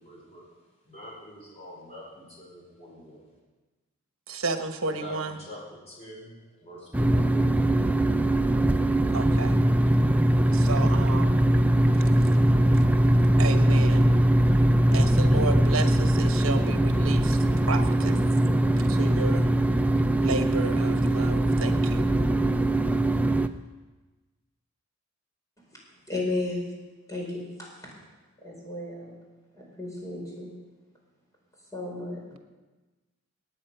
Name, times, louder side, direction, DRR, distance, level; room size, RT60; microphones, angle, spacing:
voice 1, 0.0-3.3 4.9-7.7, equal, 30° left, -4 dB, 4.7 m, -46 dB
voice 2, 4.3-5.3 9.1-9.6 10.5-11.4 13.4-14.0 14.9-17.4 17.7-18.2 18.9-19.5 20.2-22.0 32.3-32.4, right 3 dB, 70° right, 7 dB, 1.2 m, -32 dB
sound 1, 6.9-23.5, right 1 dB, 5° right, 0.4 m, -21 dB
voice 3, 26.1-26.6 27.1-27.7 28.4-29.1 29.6-30.5 31.7-32.2, left 2 dB, 15° left, -2 dB, 4.6 m, -33 dB
19.0 x 9.0 x 5.7 m, 1.2 s
head